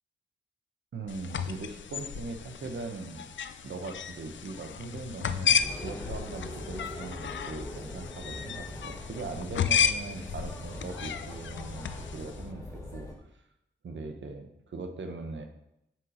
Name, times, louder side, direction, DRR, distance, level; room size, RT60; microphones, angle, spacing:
voice 1, 0.9-3.2 3.6-11.9 12.1-13.1 13.8-15.5, right 3 dB, 70° right, 5 dB, 1.0 m, -40 dB
sound 1, 1.1-12.4, left 8 dB, 70° left, 0.5 m, -33 dB
sound 2, 5.6-13.1, left 1 dB, 15° left, 2.2 m, -42 dB
7.6 x 4.1 x 5.0 m, 0.83 s
cardioid pair, 65°, 20 cm